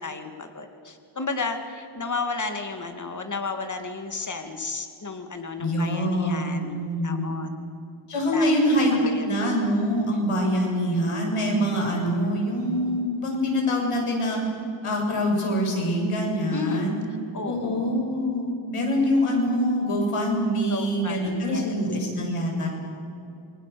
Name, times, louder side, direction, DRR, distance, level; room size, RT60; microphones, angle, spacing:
voice 1, 0.0-7.5 8.3-8.5 8.9-9.4 16.5-17.0 17.3-18.2 20.7-21.7, left 4 dB, 35° left, 6 dB, 2.5 m, -33 dB
voice 2, 5.6-7.4 8.1-14.4 14.8-17.0 17.4-22.7, equal, 85° left, 0 dB, 7.2 m, -24 dB
29.0 x 23.5 x 7.0 m, 2.7 s
wide cardioid pair, 95°, 50 cm